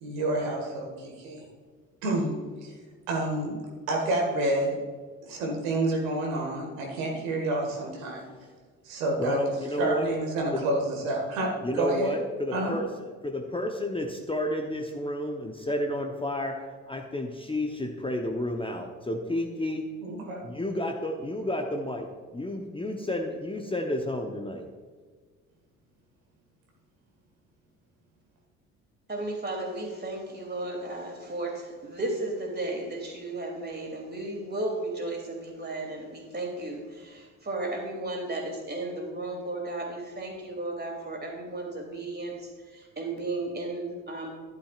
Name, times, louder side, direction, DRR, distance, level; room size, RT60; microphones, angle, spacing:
voice 1, 0.0-1.4 2.0-2.3 3.1-3.6 3.9-4.8 5.2-8.2 8.8-9.4 9.8-11.5 11.7-12.1 12.5-12.7 20.0-20.4, right 2 dB, 70° right, 0 dB, 1.8 m, -28 dB
voice 2, 9.2-10.1 10.5-10.7 11.6-12.9 13.2-16.5 16.9-19.9 20.4-24.6, left 1 dB, 15° left, 3 dB, 0.9 m, -31 dB
voice 3, 29.1-42.4 42.7-44.3, right 2 dB, 25° right, 1 dB, 2.9 m, -34 dB
11.5 x 11.5 x 2.5 m, 1.5 s
figure-of-eight pair, 50°, 41 cm